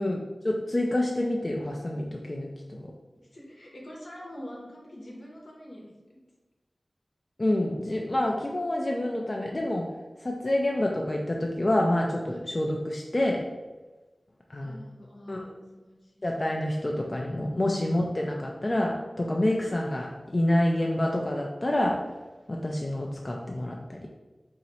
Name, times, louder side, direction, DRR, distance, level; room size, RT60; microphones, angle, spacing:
voice 1, 0.0-2.9 7.4-9.8 10.2-13.4 14.5-14.8 15.3-15.5 16.2-22.0 22.5-24.0, left 1 dB, 40° left, -1 dB, 0.4 m, -27 dB
voice 2, 3.3-6.2 14.5-16.3, equal, 75° left, -3 dB, 0.9 m, -45 dB
2.9 x 2.8 x 4.2 m, 1.2 s
wide cardioid pair, 65°, 0 cm